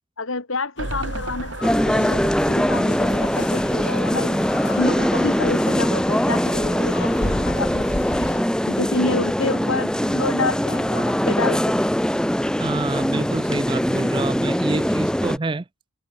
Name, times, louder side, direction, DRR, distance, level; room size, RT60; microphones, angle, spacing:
voice 1, 0.2-8.2 8.6-11.8, left 3 dB, 90° left, 2.5 m, -29 dB
sound 1, 0.8-8.4, left 1 dB, 60° left, 3.2 m, -34 dB
sound 2, 0.8-4.0 4.4-4.5 4.7-4.8, right 2 dB, 80° right, 5.0 m, -35 dB
sound 3, 1.6-15.4, equal, 5° left, 0.7 m, -22 dB
voice 2, 12.6-15.6, right 3 dB, 25° right, 0.4 m, -27 dB
head